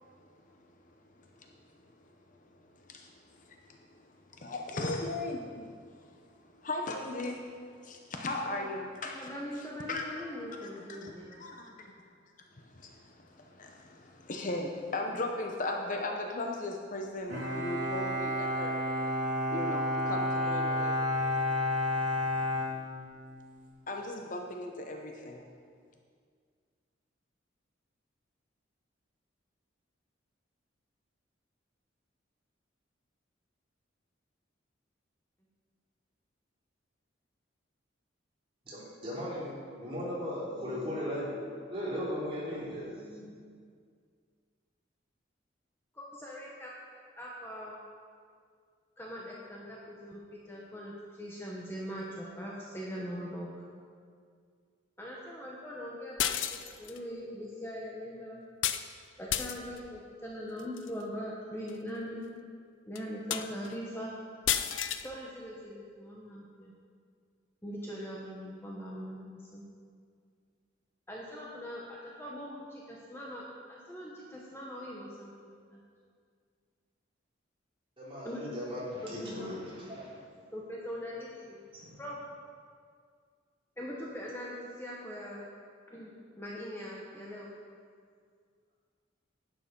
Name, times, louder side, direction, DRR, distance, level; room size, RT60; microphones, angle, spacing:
voice 1, 2.7-3.1 3.4-4.0 4.3-7.5 7.8-9.3 9.6-10.1 10.6-11.7 12.6-18.8 19.5-20.9 23.9-25.4, left 2 dB, 40° left, 2 dB, 0.8 m, -38 dB
voice 2, 9.1-11.5 45.9-46.7 47.2-47.8 49.0-53.5 55.0-58.4 59.2-62.2 62.9-64.1 65.0-66.7 67.6-69.2 69.5-69.6 71.1-75.8 78.2-78.4 79.0-79.1 79.4-79.5 80.5-81.6 82.0-82.2 83.8-85.5 85.9-87.5, equal, 10° left, -4 dB, 1.1 m, -41 dB
Bowed string instrument, 17.3-23.5, left 1 dB, 70° right, 3.2 m, -31 dB
voice 3, 38.7-43.2 78.0-80.2 81.7-82.0, equal, 30° right, -8 dB, 3.6 m, -37 dB
sound 1, 56.2-57.0 58.6-58.9 59.3-59.8 60.6-60.9 61.7-61.8 62.2-62.3 63.0-63.1 63.3-63.7 64.5-65.1, left 10 dB, 80° left, 0.5 m, -31 dB
11.5 x 9.1 x 5.3 m, 2.1 s
head